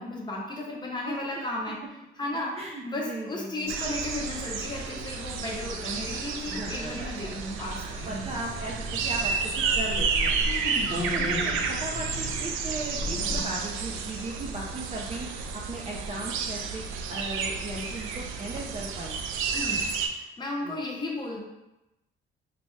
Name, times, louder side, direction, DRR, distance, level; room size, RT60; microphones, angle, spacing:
voice 1, 0.0-1.8 2.2-2.5 2.8-8.3 10.5-10.9 19.5-21.4, left 2 dB, 20° left, -3 dB, 0.9 m, -34 dB
voice 2, 1.0-1.5 2.3-3.7 6.4-7.4 8.0-19.2 20.6-20.8, right 2 dB, 30° right, -3 dB, 0.5 m, -37 dB
sound 1, 3.7-20.1, right 5 dB, 85° right, 0.4 m, -31 dB
Wind, 8.0-13.5, left 1 dB, 70° left, 0.7 m, -35 dB
4.0 x 2.2 x 3.1 m, 0.94 s
cardioid pair, 90°, 20 cm